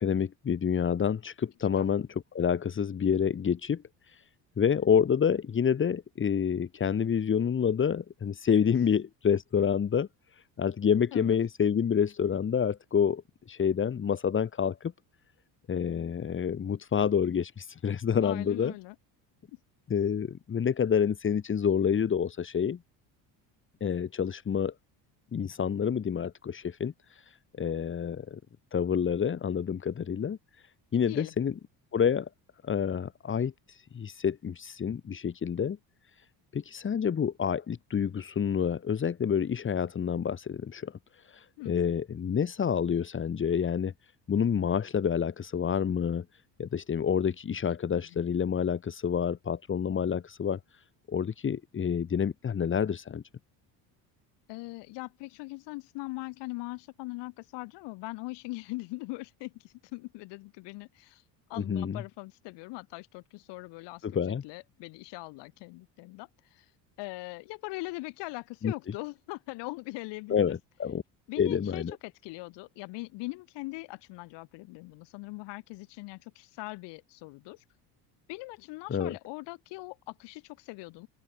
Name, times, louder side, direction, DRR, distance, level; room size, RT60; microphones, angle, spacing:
voice 1, 0.0-3.8 4.1-4.2 4.6-10.1 10.6-13.2 13.5-14.9 15.7-18.7 19.9-22.8 23.8-24.7 25.3-27.2 27.6-28.4 28.7-30.4 30.9-31.5 31.9-32.3 32.6-35.8 36.5-41.0 41.3-43.9 44.3-46.3 46.6-50.6 51.1-53.2 61.6-62.0 64.0-64.4 68.6-68.7 70.3-71.0 71.4-72.0 78.9-79.1, left 7 dB, 30° left, 3.6 m, -28 dB
voice 2, 18.2-19.0 31.1-31.3 41.6-41.9 47.9-48.2 54.5-61.2 61.5-66.7 67.0-70.6 71.3-77.6 78.3-81.1, left 24 dB, 80° left, 7.5 m, -41 dB
open air
cardioid pair, 145°, 41 cm